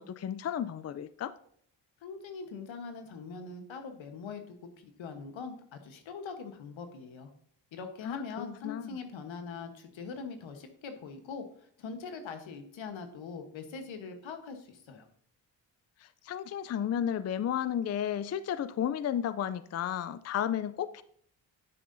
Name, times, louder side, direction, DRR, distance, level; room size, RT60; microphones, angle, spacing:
voice 1, 0.0-1.3 8.0-8.9 16.0-21.0, left 9 dB, 35° left, 14 dB, 0.4 m, -33 dB
voice 2, 2.0-7.3 7.7-15.1, left 5 dB, 80° left, 6 dB, 1.3 m, -42 dB
10.0 x 6.6 x 2.7 m, 0.64 s
cardioid pair, 60°, 46 cm